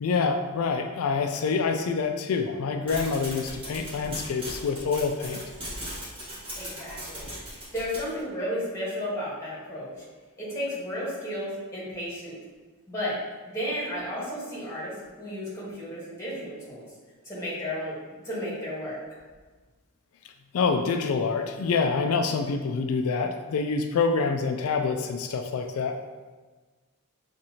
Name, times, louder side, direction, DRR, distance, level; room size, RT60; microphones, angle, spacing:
voice 1, 0.0-5.4 20.5-26.0, left 4 dB, 75° left, 6 dB, 0.3 m, -26 dB
sound 1, 2.9-8.2, equal, 25° right, 1.3 m, -38 dB
voice 2, 6.6-10.0 10.4-12.3 12.9-13.2 13.4-16.8 17.2-19.0, equal, 15° left, -7 dB, 1.4 m, -33 dB
6.3 x 2.6 x 2.8 m, 1.4 s
head